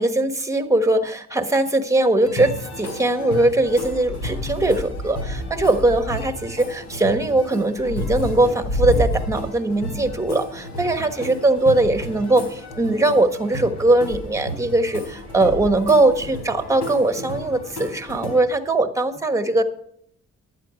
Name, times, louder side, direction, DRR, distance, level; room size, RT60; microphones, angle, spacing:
voice 1, 0.0-19.6, right 2 dB, 10° right, 6 dB, 1.3 m, -20 dB
sound 1, 2.2-18.4, left 1 dB, 80° left, 3.9 m, -31 dB
11.0 x 9.2 x 5.0 m, 0.70 s
cardioid pair, 90°, 30 cm